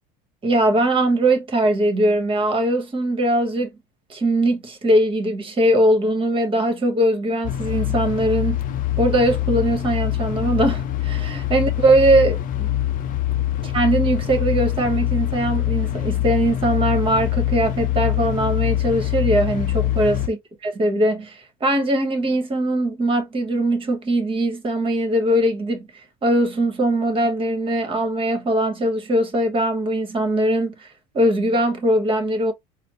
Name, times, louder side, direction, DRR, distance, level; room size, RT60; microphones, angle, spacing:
voice 1, 0.4-3.7 4.1-8.6 9.0-12.7 13.6-20.4 20.6-25.9 26.2-30.9 31.1-32.5, right 1 dB, 25° right, 1.3 m, -21 dB
sound 1, 7.4-20.3, left 13 dB, 45° left, 0.6 m, -24 dB
4.0 x 2.0 x 3.1 m
supercardioid pair, 120°, 20 cm